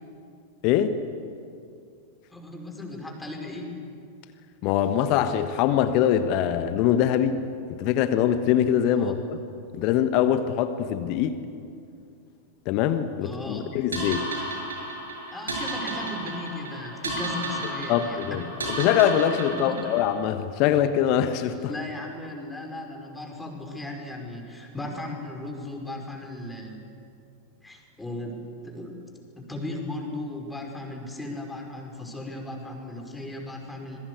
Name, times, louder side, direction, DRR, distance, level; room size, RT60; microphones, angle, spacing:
voice 1, 0.6-1.0 4.6-7.4 7.8-9.4 9.7-11.4 12.6-14.3 17.9-18.4 18.8-21.7, left 10 dB, 40° left, 10 dB, 1.4 m, -23 dB
voice 2, 2.3-3.7 9.0-9.1 13.2-13.7 15.3-18.4 21.6-26.8 27.6-29.0 29.4-34.0, left 1 dB, 5° left, 1 dB, 5.4 m, -36 dB
sound 1, 13.9-20.2, right 1 dB, 70° right, 6.9 m, -33 dB
26.5 x 22.5 x 8.3 m, 2.4 s
figure-of-eight pair, 90°, 0 cm